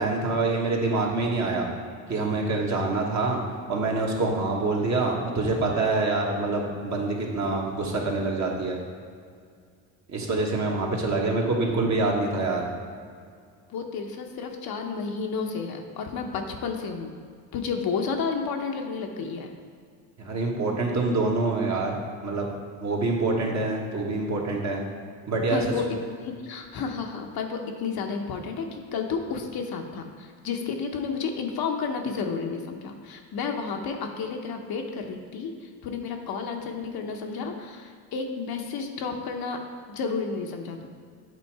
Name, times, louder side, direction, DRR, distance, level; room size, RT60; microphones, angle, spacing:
voice 1, 0.0-1.7 2.1-3.4 3.7-8.8 10.1-12.7 20.2-22.5 22.8-24.8 25.3-25.6, right 3 dB, 40° right, -1 dB, 1.5 m, -26 dB
voice 2, 13.7-17.2 17.5-19.5 25.5-39.6 39.9-40.9, left 5 dB, 55° left, 3 dB, 0.9 m, -31 dB
8.4 x 3.8 x 4.7 m, 2.1 s
supercardioid pair, 85°, 43 cm